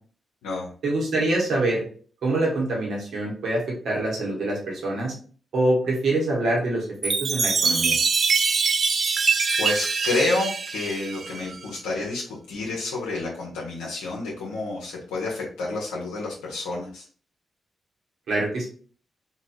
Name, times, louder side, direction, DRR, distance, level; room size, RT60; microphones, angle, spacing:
voice 1, 0.8-1.8 2.2-5.1 5.5-8.0 18.3-18.7, right 2 dB, 70° right, -2 dB, 1.2 m, -25 dB
Chime, 7.0-11.6, right 5 dB, 55° right, 0.3 m, -24 dB
voice 2, 9.6-17.0, left 2 dB, 90° left, -4 dB, 0.6 m, -29 dB
2.8 x 2.6 x 2.6 m, 0.42 s
hypercardioid pair, 40°, 0 cm